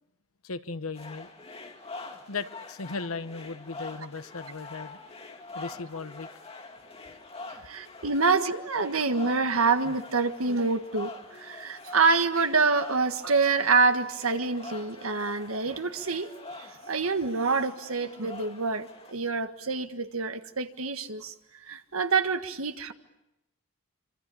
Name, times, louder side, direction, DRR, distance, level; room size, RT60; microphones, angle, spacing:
voice 1, 0.4-1.3 2.3-5.0 5.5-6.3, left 4 dB, 85° left, 12 dB, 1.2 m, -37 dB
sound 1, 0.9-19.1, left 3 dB, 30° left, 2.5 m, -45 dB
voice 2, 7.6-16.3 16.6-21.3 21.7-22.9, right 4 dB, 80° right, 9 dB, 1.6 m, -26 dB
26.0 x 26.0 x 8.5 m, 0.90 s
head